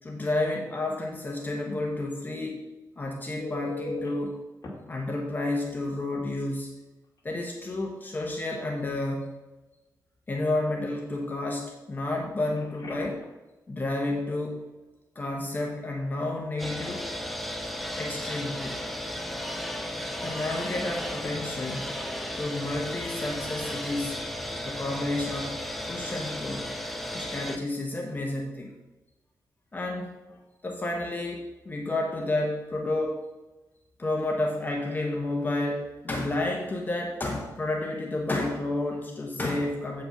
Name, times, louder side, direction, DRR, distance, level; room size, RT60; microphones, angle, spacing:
voice 1, 0.0-2.6 3.0-4.4 4.9-6.7 7.2-9.3 10.3-13.2 13.7-14.6 15.1-17.1 17.9-18.8 20.2-21.9 22.4-24.2 24.6-25.6 25.9-26.7 27.1-28.7 29.7-33.2 34.0-40.0, left 2 dB, 25° left, 0 dB, 1.1 m, -31 dB
Telephone, 3.4-4.1 4.6-4.7 6.5-6.6 7.0-7.2 12.5-13.3 20.5-20.7, left 2 dB, 50° left, 2.4 m, -39 dB
sound 1, 16.6-27.6, left 1 dB, ahead, 0.6 m, -34 dB
8.1 x 5.4 x 5.8 m, 1.1 s
wide cardioid pair, 135°, 7 cm